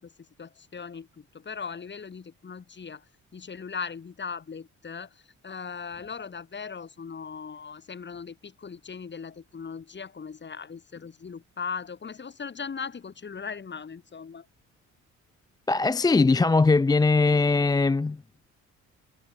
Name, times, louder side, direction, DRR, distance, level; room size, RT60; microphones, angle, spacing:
voice 1, 0.0-3.1 3.3-14.5, left 5 dB, 35° left, 3.7 m, -39 dB
voice 2, 15.7-18.2, left 3 dB, 15° left, 0.5 m, -21 dB
cardioid pair, 90°, 30 cm